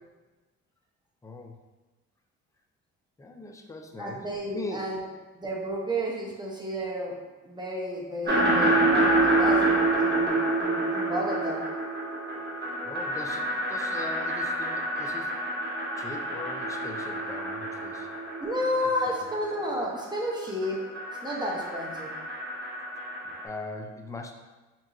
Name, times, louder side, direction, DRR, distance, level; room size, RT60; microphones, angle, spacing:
voice 1, 1.2-1.5 3.2-4.8 12.8-15.4 16.0-18.1 19.1-19.2 23.4-24.3, left 2 dB, 10° left, 4 dB, 0.4 m, -40 dB
voice 2, 4.0-5.0 5.4-7.2 7.4-11.6 18.4-20.8 21.2-22.1, equal, 15° right, -2 dB, 0.8 m, -32 dB
sound 1, 8.3-20.0 20.3-23.4, right 2 dB, 35° right, 1.4 m, -28 dB
5.1 x 2.9 x 2.5 m, 1.2 s
cardioid pair, 90°, 30 cm